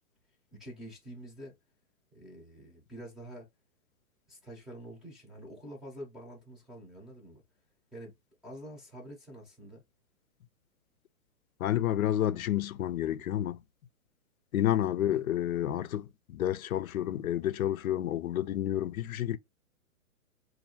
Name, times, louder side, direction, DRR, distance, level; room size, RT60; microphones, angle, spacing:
voice 1, 0.5-1.5 2.1-3.5 4.3-7.4 7.9-8.1 8.4-9.8 15.0-15.3, equal, ahead, 0.6 m, -47 dB
voice 2, 11.6-13.6 14.5-19.4, left 12 dB, 85° left, 0.6 m, -30 dB
4.3 x 2.6 x 2.8 m
hypercardioid pair, 150°, 41 cm